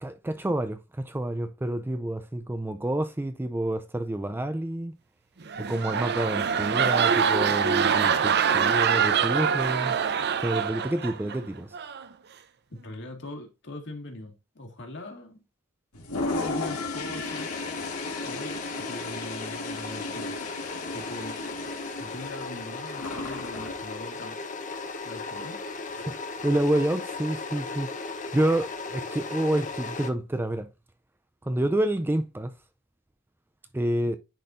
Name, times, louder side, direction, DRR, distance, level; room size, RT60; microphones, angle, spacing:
voice 1, 0.0-4.9 5.6-10.0 10.4-11.7 26.0-26.2 26.4-27.9 28.3-30.7 31.4-32.5 33.7-34.2, right 1 dB, 10° right, 0.4 m, -28 dB
sound 1, 5.4-11.4 11.7-12.1, right 7 dB, 50° right, 0.6 m, -24 dB
voice 2, 12.7-15.4 16.2-17.5 18.2-20.4 20.9-21.5 22.0-24.4 25.0-25.6, left 1 dB, 55° left, 2.0 m, -41 dB
Toilet flush, 15.9-23.8, left 3 dB, 80° left, 2.1 m, -35 dB
sound 2, 17.2-30.1, left 3 dB, 35° left, 0.9 m, -37 dB
10.0 x 4.3 x 2.6 m
head